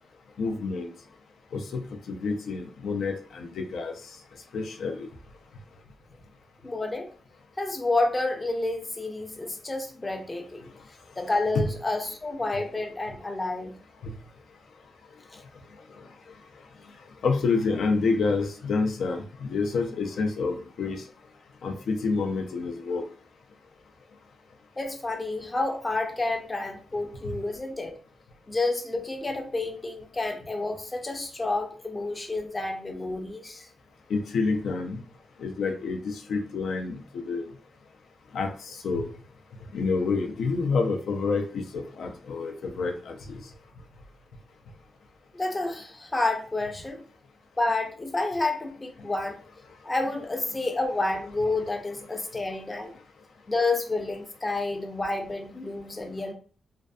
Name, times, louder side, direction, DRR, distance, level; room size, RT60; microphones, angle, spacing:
voice 1, 0.4-0.9 1.5-1.8 2.1-3.9 4.5-5.1 11.5-11.7 14.0-14.1 17.2-21.0 21.6-23.0 27.2-27.4 34.1-35.0 35.4-37.5 38.3-39.1 39.7-43.4, left 4 dB, 80° left, 4 dB, 0.4 m, -28 dB
voice 2, 6.6-7.1 7.6-10.7 11.2-13.7 15.3-15.4 24.8-27.9 28.5-33.7 45.3-47.0 47.6-49.4 49.8-53.0 53.5-56.3, left 2 dB, 20° left, 3 dB, 0.4 m, -29 dB
2.6 x 2.3 x 2.2 m, 0.39 s
wide cardioid pair, 130°, 0 cm